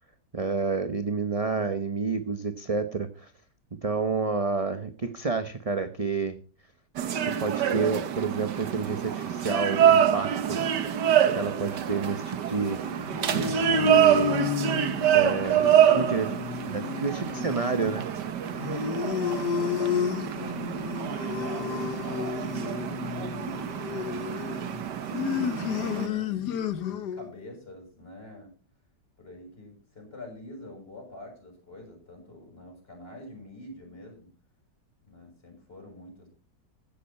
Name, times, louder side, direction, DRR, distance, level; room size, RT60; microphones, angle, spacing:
voice 1, 0.3-3.3 3.8-6.4 7.2-10.6 11.4-12.8 13.7-14.4 15.1-15.6 15.9-16.3 16.7-18.1, right 4 dB, 25° right, 9 dB, 0.8 m, -29 dB
sound 1, 7.0-26.1, right 9 dB, 75° right, 1.7 m, -26 dB
sound 2, 12.8-27.3, left 7 dB, 70° left, 1.5 m, -32 dB
voice 2, 16.0-16.5 16.8-17.2 18.4-18.8 19.5-23.7 23.9-24.6 25.3-28.5 29.2-34.3 35.1-36.3, left 1 dB, 35° left, 2 dB, 6.9 m, -46 dB
15.5 x 11.5 x 4.3 m, 0.36 s
omnidirectional pair, 1.9 m